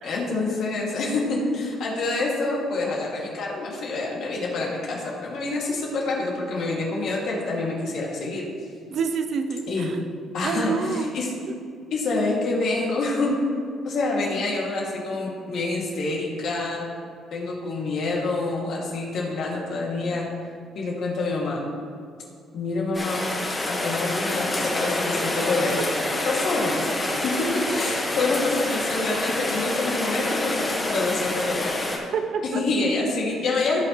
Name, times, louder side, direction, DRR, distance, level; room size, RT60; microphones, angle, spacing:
voice 1, 0.0-8.5 9.7-9.9 10.3-11.3 11.9-13.4 13.8-16.8 17.3-20.3 20.7-21.7 22.5-23.3 23.6-25.8 26.2-31.8 32.5-33.8, left 3 dB, 65° left, -3 dB, 2.6 m, -27 dB
voice 2, 8.9-10.0 10.4-11.1 11.5-11.6 25.7-25.8 32.1-32.6, right 5 dB, 60° right, 8 dB, 0.7 m, -28 dB
Rain, 22.9-32.0, left 2 dB, 20° left, 1.7 m, -27 dB
16.0 x 5.7 x 3.3 m, 2.3 s
cardioid pair, 85°, 0 cm